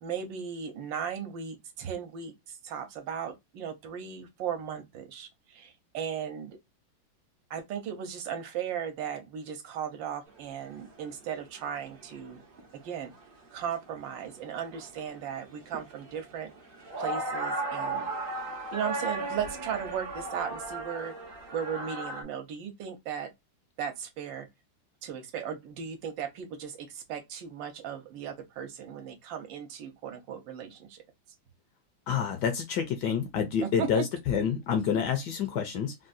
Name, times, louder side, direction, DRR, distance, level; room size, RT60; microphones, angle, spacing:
voice 1, 0.0-2.3 2.6-6.6 7.5-12.4 12.7-13.1 13.5-16.5 17.0-18.1 18.7-21.1 21.5-23.3 23.8-24.5 25.0-31.0 33.6-34.0, right 8 dB, 75° right, 1.4 m, -36 dB
sound 1, 10.3-10.4 10.7-10.8 11.0-11.5 11.9-13.3 13.6-22.2, right 2 dB, 50° right, 0.6 m, -36 dB
voice 2, 32.1-35.9, left 7 dB, 70° left, 1.1 m, -28 dB
3.7 x 2.3 x 2.5 m
omnidirectional pair, 2.2 m